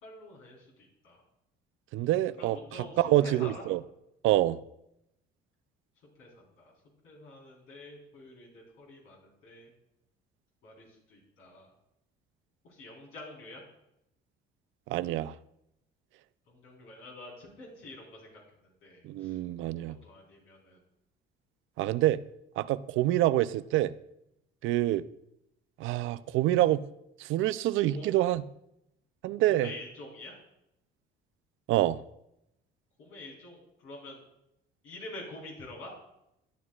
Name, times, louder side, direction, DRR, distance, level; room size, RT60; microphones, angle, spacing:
voice 1, 0.0-1.2 2.4-3.6 6.2-6.7 7.0-9.7 10.6-11.7 12.6-13.6 16.5-18.4 18.8-19.4 20.0-20.8 27.9-28.2 29.5-30.4 33.0-34.2 34.8-36.0, left 1 dB, 75° left, 4.0 m, -47 dB
voice 2, 1.9-3.8 4.2-4.6 14.9-15.3 19.0-20.0 21.8-22.2 22.6-23.9 24.6-25.0 25.8-26.8 27.2-28.4 29.2-29.7 31.7-32.0, right 14 dB, 70° right, 0.5 m, -26 dB
13.5 x 9.3 x 2.4 m
cardioid pair, 105°, 21 cm